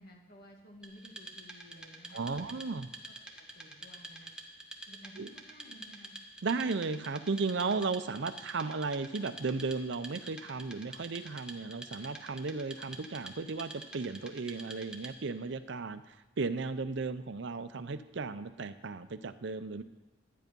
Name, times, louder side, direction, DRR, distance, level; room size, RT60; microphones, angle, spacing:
voice 1, 0.0-2.6 3.0-4.3 4.9-6.1, equal, 50° left, 1 dB, 2.0 m, -55 dB
Wood, 0.8-15.4, right 1 dB, 5° right, 0.9 m, -48 dB
voice 2, 2.1-2.9 5.2-5.3 6.4-19.8, right 4 dB, 60° right, 11 dB, 0.6 m, -35 dB
12.5 x 9.3 x 5.3 m, 1.1 s
head